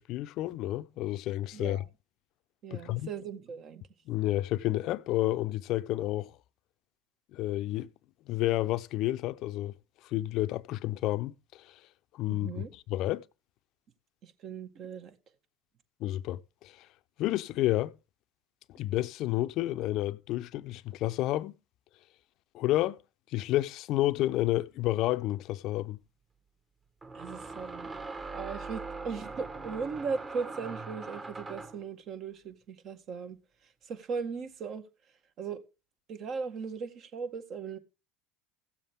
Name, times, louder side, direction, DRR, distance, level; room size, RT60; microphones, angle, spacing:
voice 1, 0.0-1.8 2.7-3.1 4.1-6.3 7.3-7.9 8.3-9.8 10.0-11.7 12.1-12.6 12.9-13.2 16.0-16.9 17.2-17.9 18.8-21.6 22.5-23.0 23.3-26.0, left 15 dB, 60° left, 0.6 m, -30 dB
voice 2, 1.5-1.9 2.6-3.8 12.3-12.7 14.2-15.2 27.1-27.9 28.3-34.8 35.4-35.6 36.1-37.8, right 5 dB, 50° right, 1.9 m, -38 dB
sound 1, 25.1-25.2 27.0-31.9, right 3 dB, 25° right, 1.6 m, -41 dB
16.0 x 7.3 x 3.6 m
hypercardioid pair, 85°, 0 cm